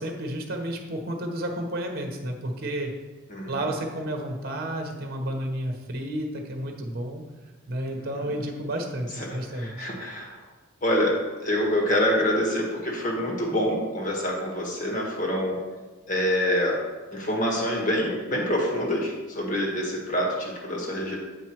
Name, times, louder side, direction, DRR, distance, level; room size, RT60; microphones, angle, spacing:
voice 1, 0.0-2.9 3.5-7.2 7.7-9.9, right 1 dB, 45° right, 3 dB, 1.1 m, -31 dB
voice 2, 3.3-3.7 8.0-8.4 9.1-10.4 10.8-11.1 11.4-15.6 16.1-16.8 17.1-21.2, equal, 40° left, -2 dB, 1.7 m, -26 dB
8.2 x 4.9 x 4.6 m, 1.3 s
head